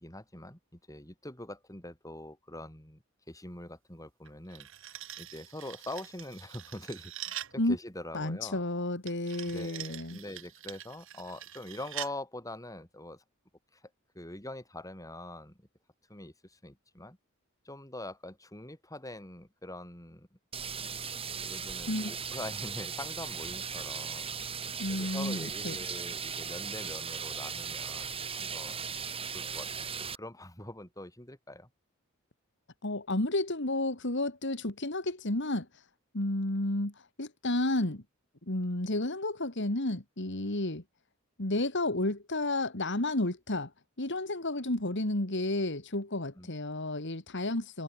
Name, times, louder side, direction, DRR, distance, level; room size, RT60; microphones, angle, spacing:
voice 1, 0.0-8.6 9.5-13.2 13.7-13.9 14.1-15.6 16.1-17.2 17.6-20.4 21.0-24.4 24.9-29.0 29.3-29.7 30.1-31.7 46.4-46.5, left 1 dB, 15° left, 7.9 m, -44 dB
sound 1, 4.3-7.6 9.1-12.2, right 12 dB, 65° right, 4.1 m, -44 dB
voice 2, 8.1-10.2 21.9-22.1 24.8-25.8 32.8-35.8 36.1-38.0 38.5-40.8 41.4-43.7 44.0-47.8, left 2 dB, 55° left, 2.7 m, -31 dB
sound 2, 20.5-30.2, right 6 dB, 25° right, 3.5 m, -38 dB
head